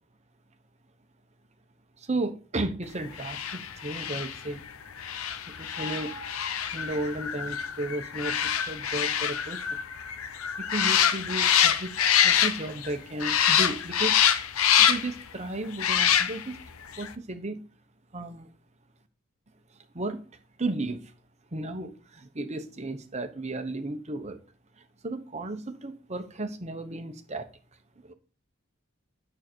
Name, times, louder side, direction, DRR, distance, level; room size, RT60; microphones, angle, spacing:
voice 1, 2.0-4.6 5.6-6.1 6.7-8.4 8.7-9.8 10.6-14.2 14.8-16.6 17.0-17.6 18.1-18.5 19.9-20.2 20.6-21.0 21.5-24.4 24.8-27.5 28.0-28.1, right 2 dB, 30° right, 1.0 m, -34 dB
sound 1, 3.1-12.9 13.2-15.2 15.7-16.6 16.9-17.1, left 9 dB, 80° left, 0.8 m, -25 dB
9.2 x 6.5 x 4.5 m
head